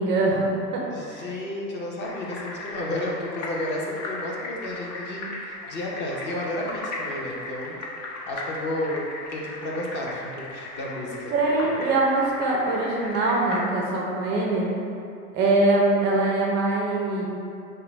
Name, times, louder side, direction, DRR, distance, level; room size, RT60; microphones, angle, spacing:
voice 1, 0.0-0.8 1.1-1.3 11.3-14.7 15.3-17.3, right 2 dB, 25° right, -2 dB, 0.4 m, -23 dB
voice 2, 0.9-7.8 8.2-9.0 9.3-11.3, left 1 dB, 20° left, -2 dB, 0.6 m, -32 dB
sound 1, 2.0-13.6, left 2 dB, 50° left, 0.9 m, -37 dB
5.6 x 2.2 x 3.3 m, 2.7 s
hypercardioid pair, 105°, 50 cm